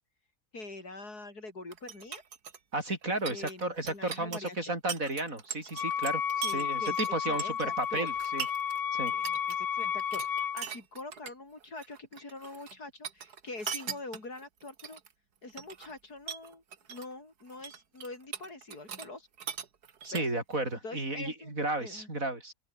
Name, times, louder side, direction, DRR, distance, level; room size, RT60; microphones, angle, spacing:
voice 1, 0.5-2.2 3.3-4.7 6.4-8.1 9.1-15.0 15.4-16.6 16.9-19.3 20.1-20.2 20.8-22.1, left 2 dB, 85° left, 6.0 m, -44 dB
sound 1, 1.7-8.8 9.1-9.6 9.8-11.3 11.6-12.8 13.0-15.1 15.5-16.0 16.3-17.1 17.4-19.1 19.4-20.6, right 7 dB, 85° right, 2.1 m, -41 dB
voice 2, 2.7-6.2 6.5-8.5 8.9-9.1 20.0-22.5, right 2 dB, 60° right, 6.5 m, -33 dB
Wind instrument woodwind instrument, 5.7-10.7, left 8 dB, 45° left, 0.9 m, -32 dB
open air
omnidirectional pair, 1.6 m